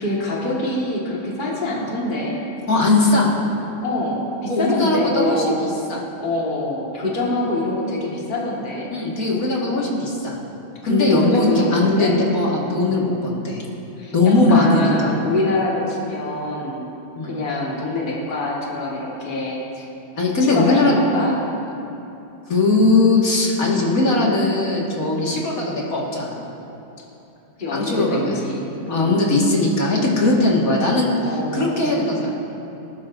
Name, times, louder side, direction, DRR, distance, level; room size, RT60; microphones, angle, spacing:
voice 1, 0.0-2.4 3.8-5.6 6.2-8.9 10.8-12.2 12.9-13.4 14.0-16.9 17.2-19.6 20.5-21.4 25.2-25.4 27.6-29.3 31.2-32.2, left 2 dB, 25° left, -4 dB, 1.8 m, -25 dB
voice 2, 2.7-3.3 4.5-6.0 8.9-10.4 10.9-13.6 14.1-15.1 17.1-17.4 20.2-21.0 22.5-26.4 27.7-28.4 28.9-31.1 31.5-32.3, left 2 dB, 45° left, -4 dB, 2.2 m, -19 dB
19.5 x 12.5 x 2.6 m, 2.9 s
omnidirectional pair, 2.1 m